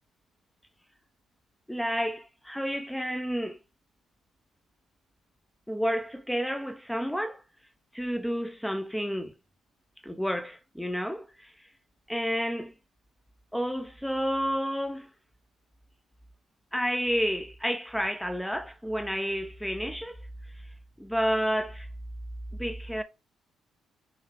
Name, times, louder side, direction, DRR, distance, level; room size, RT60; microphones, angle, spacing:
voice 1, 1.7-3.6 5.7-7.4 7.9-9.3 10.0-11.5 12.1-12.7 13.5-15.1 16.7-20.2 21.0-21.9 22.5-23.0, equal, ahead, 0.5 m, -30 dB
5.4 x 2.0 x 3.3 m
supercardioid pair, 60°, 0 cm